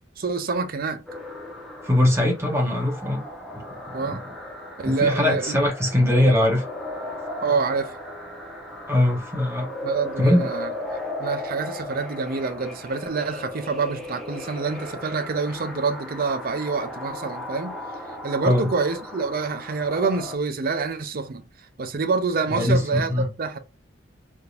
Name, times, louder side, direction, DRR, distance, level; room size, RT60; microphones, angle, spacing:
voice 1, 0.2-1.0 3.9-4.2 4.8-5.7 7.4-8.0 9.8-17.8 18.2-21.4 21.8-23.6, right 4 dB, 50° right, 0.5 m, -27 dB
sound 1, 1.1-20.4, left 1 dB, ahead, 0.8 m, -36 dB
voice 2, 1.8-3.2 3.9-4.2 4.8-6.6 8.9-9.7 10.2-10.5 18.4-18.7 22.5-23.3, left 1 dB, 15° right, 1.1 m, -21 dB
3.5 x 2.8 x 2.4 m
head